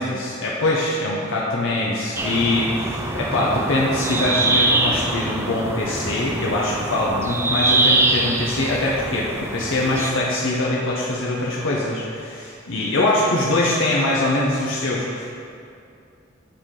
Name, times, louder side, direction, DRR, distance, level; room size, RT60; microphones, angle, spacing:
voice 1, 0.0-15.2, left 2 dB, 75° left, -5 dB, 0.7 m, -23 dB
sound 1, 2.2-10.1, right 2 dB, 15° right, 0.3 m, -23 dB
8.8 x 3.4 x 3.7 m, 2.4 s
head